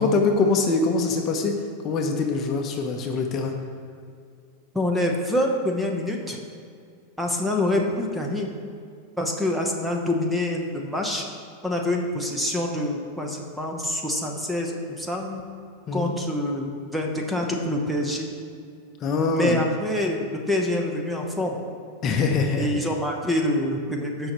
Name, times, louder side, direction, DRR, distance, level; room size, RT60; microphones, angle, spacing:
voice 1, 0.0-1.5 1.8-3.5 15.9-16.1 19.0-19.6 22.0-22.9, left 4 dB, 35° left, 3 dB, 0.8 m, -23 dB
voice 2, 4.7-6.4 7.2-8.5 9.1-11.2 11.6-15.4 15.9-18.3 19.3-21.6 22.6-24.3, left 1 dB, 5° right, 1 dB, 0.9 m, -26 dB
15.5 x 5.4 x 3.1 m, 2.3 s
supercardioid pair, 135°, 0 cm